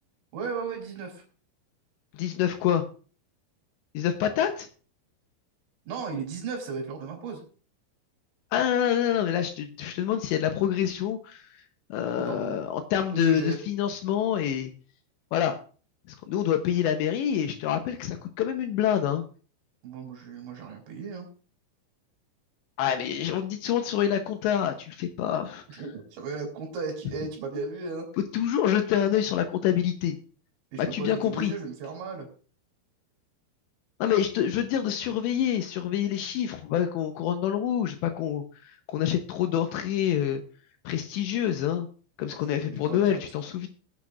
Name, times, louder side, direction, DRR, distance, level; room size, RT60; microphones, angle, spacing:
voice 1, 0.3-1.2 5.9-7.4 12.1-12.5 13.1-13.6 19.8-21.3 25.7-28.1 30.7-32.3 42.6-43.2, right 4 dB, 70° right, 2 dB, 5.0 m, -35 dB
voice 2, 2.1-2.8 3.9-4.7 8.5-11.4 11.9-14.7 15.3-15.6 16.3-19.2 22.8-25.8 28.3-30.2 30.8-31.5 34.0-38.4 38.9-40.4 40.9-41.9 42.2-43.7, left 10 dB, 80° left, 6 dB, 2.7 m, -26 dB
21.0 x 8.3 x 2.4 m, 0.40 s
omnidirectional pair, 5.5 m